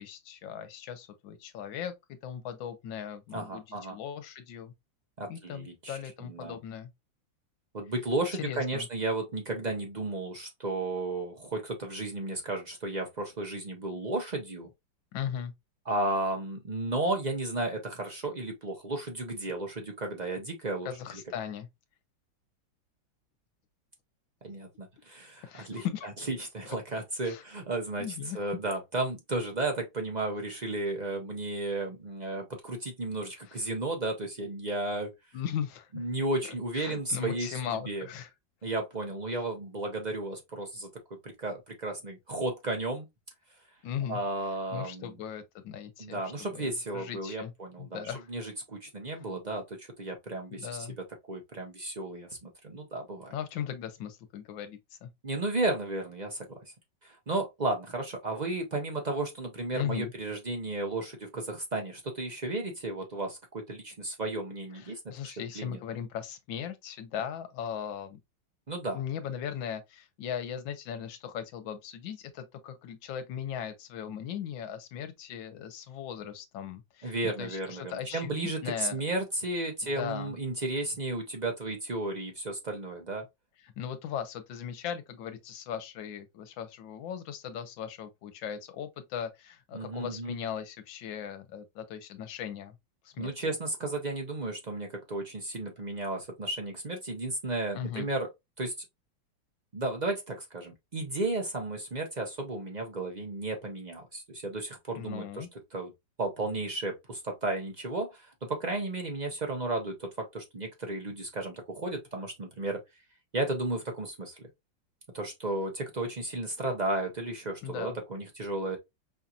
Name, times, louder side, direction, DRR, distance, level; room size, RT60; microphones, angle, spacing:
voice 1, 0.0-4.7 5.3-6.9 8.3-8.9 15.1-15.5 20.8-21.7 25.4-26.1 27.2-27.4 28.0-28.4 35.3-36.0 36.7-38.3 43.8-44.2 44.7-47.5 47.8-48.3 50.6-51.0 53.3-55.1 59.7-60.1 64.7-68.2 68.9-79.0 79.8-80.3 83.8-92.7 93.0-93.3 97.7-98.1 105.0-105.5 117.6-118.0, left 9 dB, 80° left, 1.5 m, -38 dB
voice 2, 3.3-4.0 5.2-6.6 7.7-14.7 15.9-20.9 24.4-25.9 26.3-28.0 28.3-35.1 35.9-38.1 38.6-40.9 41.2-43.1 44.1-45.1 46.0-50.9 51.3-53.4 55.2-56.7 57.0-63.4 63.7-65.8 68.7-69.0 77.0-83.3 89.7-90.4 93.2-98.3 98.6-98.7 99.7-105.4 105.7-105.9 106.2-112.8 113.3-114.4 115.1-118.8, right 2 dB, 55° right, 0.4 m, -33 dB
5.5 x 2.8 x 2.4 m
omnidirectional pair, 2.1 m